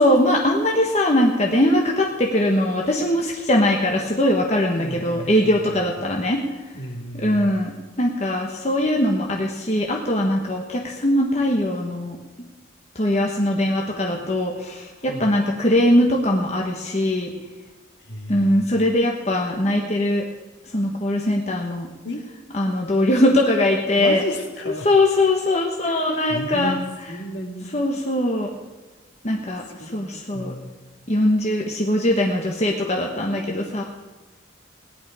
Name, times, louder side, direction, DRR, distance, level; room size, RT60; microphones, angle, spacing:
voice 1, 0.0-6.4 7.1-7.7 8.0-12.2 12.9-17.3 18.3-20.3 20.7-21.9 22.5-24.2 24.8-26.7 27.7-28.5 29.2-30.5 31.1-33.8, left 1 dB, 35° left, 0 dB, 1.2 m, -21 dB
voice 2, 4.8-5.8 6.7-7.6 15.0-15.3 18.0-18.6 22.0-22.3 23.9-24.9 25.8-26.8 27.1-27.7 29.8-30.7, equal, 60° left, 2 dB, 2.2 m, -33 dB
18.0 x 11.0 x 4.9 m, 1.2 s
head